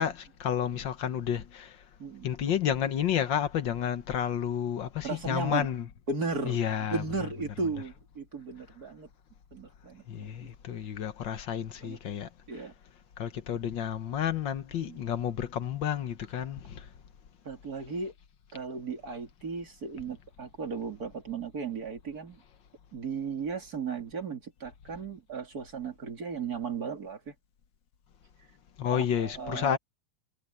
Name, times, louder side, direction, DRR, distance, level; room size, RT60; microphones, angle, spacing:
voice 1, 0.0-1.8 2.2-5.9 6.5-7.0 10.1-12.7 13.2-16.9 28.8-29.8, left 9 dB, 80° left, 1.9 m, -31 dB
voice 2, 5.0-5.7 6.1-6.6 6.9-9.1 9.5-10.5 11.8-12.0 12.5-12.7 14.9-15.0 17.4-18.1 18.5-22.4 22.9-27.3 28.9-29.8, right 4 dB, 55° right, 3.2 m, -36 dB
omnidirectional pair, 2.0 m